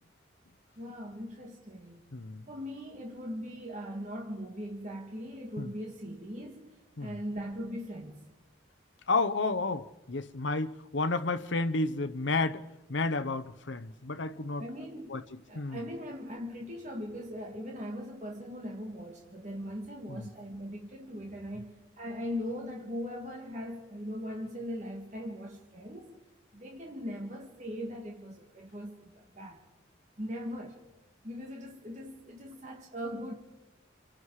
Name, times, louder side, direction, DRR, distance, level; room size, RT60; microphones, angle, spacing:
voice 1, 0.8-2.0 2.5-6.7 7.0-8.2 14.6-26.1 26.5-29.6 30.2-30.8 31.2-33.3, equal, 40° right, 2.1 m, -40 dB
voice 2, 2.1-2.4 5.6-5.7 7.0-7.2 9.1-12.6 12.9-14.6 15.1-15.2 15.5-15.8 20.1-20.3, left 3 dB, 75° left, 0.9 m, -31 dB
28.5 x 25.5 x 4.9 m
head